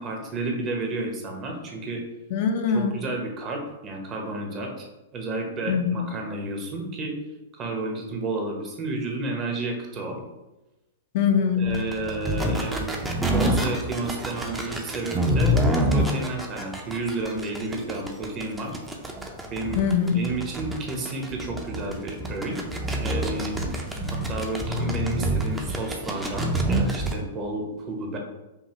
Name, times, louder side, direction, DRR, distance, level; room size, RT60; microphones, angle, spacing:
voice 1, 0.0-2.0 2.7-4.9 5.1-7.2 7.5-10.2 11.5-12.9 13.3-15.6 15.9-18.8 19.5-19.8 20.1-22.6 23.0-23.5 24.3-28.2, right 2 dB, 30° right, 1 dB, 1.0 m, -31 dB
voice 2, 2.3-3.0 5.7-6.0 11.1-11.7 19.8-20.2, left 7 dB, 50° left, 5 dB, 0.5 m, -22 dB
sound 1, 11.7-27.2, equal, 10° right, 0.6 m, -26 dB
5.3 x 2.4 x 3.0 m, 1.0 s
hypercardioid pair, 110°, 0 cm